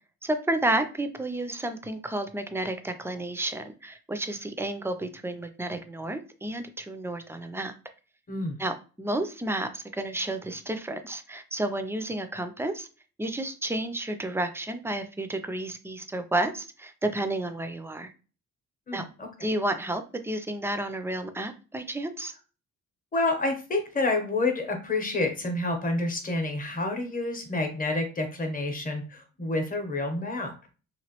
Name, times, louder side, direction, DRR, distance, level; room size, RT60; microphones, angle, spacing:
voice 1, 0.2-7.7 8.6-12.9 13.2-18.1 18.9-19.0 19.4-22.3, right 1 dB, 10° right, 8 dB, 0.3 m, -31 dB
voice 2, 18.9-19.5 23.1-30.5, left 2 dB, 30° left, 4 dB, 0.8 m, -29 dB
3.0 x 2.5 x 2.8 m, 0.35 s
cardioid pair, 115°, 30 cm